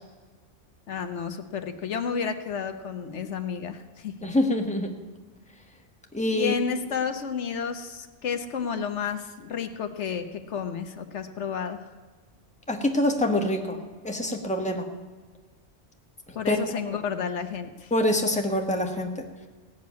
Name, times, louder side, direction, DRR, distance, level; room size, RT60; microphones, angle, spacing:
voice 1, 0.9-4.1 6.3-11.9 16.3-17.9, left 6 dB, 75° left, 7 dB, 1.3 m, -31 dB
voice 2, 4.2-4.9 6.1-6.5 12.7-14.9 16.5-16.6 17.9-19.2, left 1 dB, 5° left, 3 dB, 1.3 m, -25 dB
17.0 x 6.7 x 9.4 m, 1.4 s
omnidirectional pair, 1.2 m